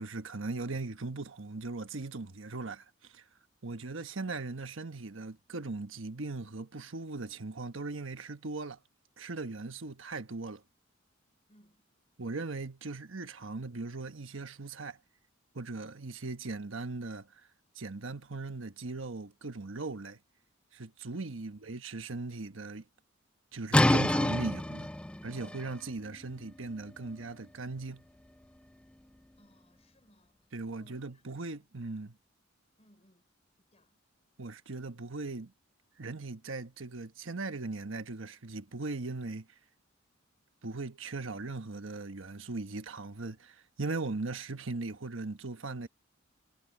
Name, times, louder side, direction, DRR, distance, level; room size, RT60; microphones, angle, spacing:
voice 1, 0.0-3.2 3.6-8.8 9.2-10.6 12.2-15.0 15.5-17.4 17.8-20.2 20.7-22.8 23.5-24.9 25.2-28.0 30.5-32.1 34.4-35.5 36.0-39.5 40.6-45.9, right 3 dB, 70° right, 1.2 m, -39 dB
voice 2, 11.5-11.9 21.4-21.6 29.4-31.7 32.8-33.3 33.7-34.0, equal, 30° left, 5.5 m, -66 dB
sound 1, 23.7-29.3, left 1 dB, 5° left, 0.3 m, -30 dB
head